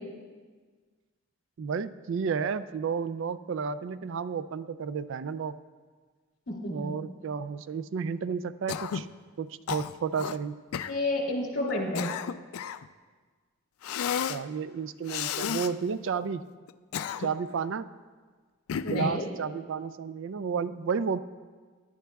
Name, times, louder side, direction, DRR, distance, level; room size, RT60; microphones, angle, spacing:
voice 1, 1.6-5.5 6.7-9.1 9.4-10.6 14.3-16.4 17.2-17.9 18.9-21.2, right 6 dB, 60° right, 15 dB, 0.3 m, -32 dB
voice 2, 6.5-6.9 10.9-12.1 18.8-19.3, left 1 dB, 60° left, -1 dB, 3.0 m, -30 dB
Cough, 8.7-9.1 9.7-10.4 10.7-11.0 11.7-12.9 13.8-14.4 15.1-15.7 16.7-17.5 18.7-19.2, left 8 dB, 85° left, 0.4 m, -32 dB
18.0 x 11.0 x 2.3 m, 1.5 s
head